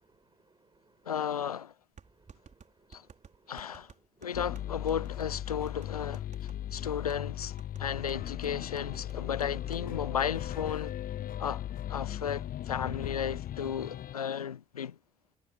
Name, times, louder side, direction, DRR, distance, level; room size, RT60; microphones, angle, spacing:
voice 1, 0.0-1.2 2.0-3.9 4.1-4.4 6.5-7.1 7.7-7.9 11.3-11.4, right 3 dB, 25° right, 6.5 m, -65 dB
sound 1, 1.0-1.1 2.0-9.9 10.2-10.3 10.6-11.0, right 6 dB, 40° right, 4.7 m, -56 dB
voice 2, 1.1-1.7 2.9-3.1 3.5-3.9 4.2-10.9 11.4-15.0, left 8 dB, 85° left, 0.8 m, -34 dB
sound 2, 4.3-14.1, left 11 dB, 50° left, 1.0 m, -38 dB
figure-of-eight pair, 45°, 19 cm